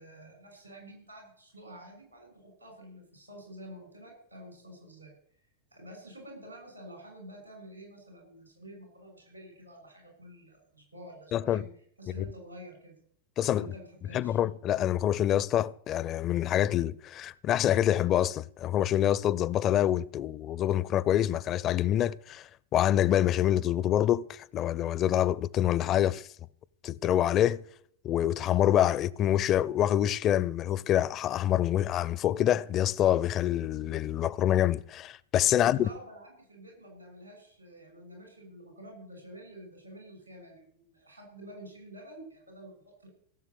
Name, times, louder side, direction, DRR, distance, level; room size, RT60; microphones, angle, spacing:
voice 1, 0.0-5.1 5.7-11.6 12.0-12.9 13.5-14.4 35.5-43.1, right 1 dB, 85° right, 6.4 m, -49 dB
voice 2, 11.3-11.6 12.2-12.3 13.4-13.7 14.1-26.3 26.8-27.6 28.0-35.9, left 11 dB, 30° left, 0.5 m, -26 dB
16.5 x 7.3 x 8.3 m
figure-of-eight pair, 90°, 0 cm